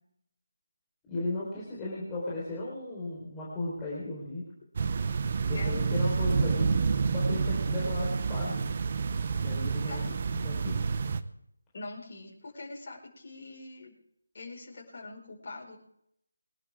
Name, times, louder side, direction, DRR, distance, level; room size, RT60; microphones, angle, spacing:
voice 1, 1.0-4.4 5.5-6.8 7.1-8.7 9.4-10.9, left 2 dB, 10° left, -7 dB, 4.0 m, -36 dB
sound 1, 4.8-11.2, right 5 dB, 35° right, 0.8 m, -29 dB
voice 2, 11.7-13.9 14.3-15.8, left 2 dB, 40° left, -3 dB, 5.0 m, -43 dB
24.0 x 12.0 x 3.6 m, 0.73 s
figure-of-eight pair, 160°, 0 cm